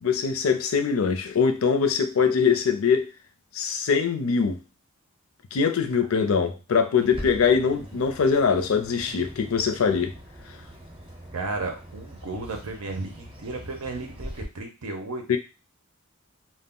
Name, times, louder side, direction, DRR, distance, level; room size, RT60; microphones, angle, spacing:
voice 1, 0.0-3.1 3.5-4.6 5.5-10.1 15.3-15.4, left 6 dB, 70° left, 7 dB, 0.4 m, -22 dB
Bird, 7.0-14.4, equal, 25° right, 0.6 m, -42 dB
voice 2, 11.3-15.4, right 3 dB, 85° right, 4 dB, 0.7 m, -34 dB
2.3 x 2.0 x 3.6 m, 0.29 s
head